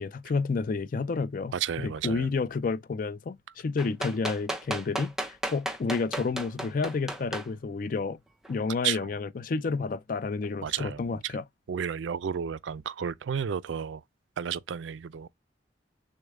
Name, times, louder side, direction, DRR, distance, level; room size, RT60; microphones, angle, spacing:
voice 1, 0.0-8.2 8.5-11.4, left 4 dB, 50° left, 0.4 m, -30 dB
voice 2, 1.5-2.3 8.8-9.1 10.6-11.3 11.7-14.0 14.4-15.3, right 8 dB, 90° right, 0.4 m, -32 dB
sound 1, 3.8-7.5 8.4-8.5, right 1 dB, ahead, 0.6 m, -33 dB
6.4 x 2.2 x 3.5 m
head